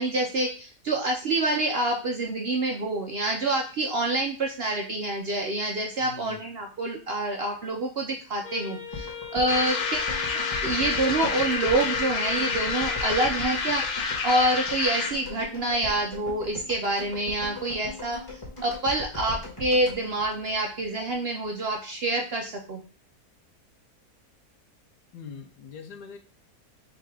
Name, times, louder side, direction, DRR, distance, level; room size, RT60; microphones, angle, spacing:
voice 1, 0.0-22.8, right 2 dB, 60° right, 2 dB, 0.6 m, -27 dB
voice 2, 6.0-6.4 25.1-26.2, left 5 dB, 90° left, 6 dB, 1.3 m, -42 dB
Wind instrument woodwind instrument, 8.4-13.3, left 8 dB, 30° left, 1.9 m, -38 dB
sound 1, 8.9-21.1 21.4-21.5, left 2 dB, 15° left, 1.4 m, -40 dB
sound 2, 9.5-15.3, left 5 dB, 60° left, 0.9 m, -29 dB
3.9 x 2.8 x 4.7 m, 0.36 s
omnidirectional pair, 1.7 m